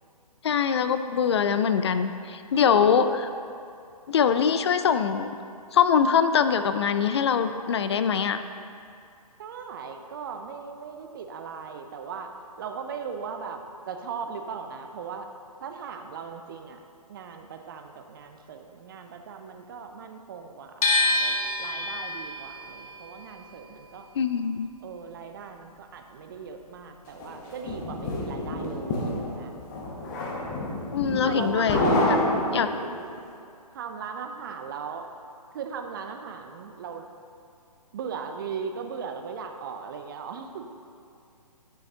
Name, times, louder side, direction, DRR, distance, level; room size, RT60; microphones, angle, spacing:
voice 1, 0.4-3.1 4.1-5.3 5.7-8.4 24.2-24.7 30.9-32.2 32.5-32.7, left 7 dB, 45° left, 10 dB, 0.4 m, -23 dB
voice 2, 2.5-3.1 9.4-12.3 12.6-13.6 13.9-15.3 15.6-16.8 17.1-24.1 24.8-29.5 30.5-31.0 31.2-32.2 33.7-35.1 35.5-37.1 37.9-40.7, right 6 dB, 35° right, 5 dB, 0.5 m, -38 dB
sound 1, 20.8-26.8 27.1-28.4, left 2 dB, 65° left, 1.1 m, -29 dB
sound 2, 27.2-33.1, left 1 dB, 30° left, 0.8 m, -28 dB
8.5 x 6.3 x 2.7 m, 2.4 s
figure-of-eight pair, 135°, 20 cm